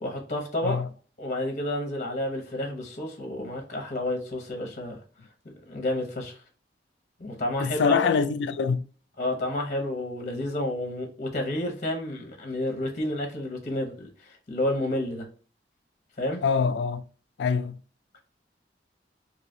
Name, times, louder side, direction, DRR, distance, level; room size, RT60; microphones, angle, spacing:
voice 1, 0.0-0.8 1.2-5.0 5.7-6.4 7.2-8.1 9.2-15.3 16.2-16.4, left 1 dB, 45° left, 0.8 m, -30 dB
voice 2, 7.6-8.8 16.4-17.0 17.4-17.8, left 5 dB, 80° left, 0.4 m, -24 dB
3.1 x 2.7 x 2.6 m
head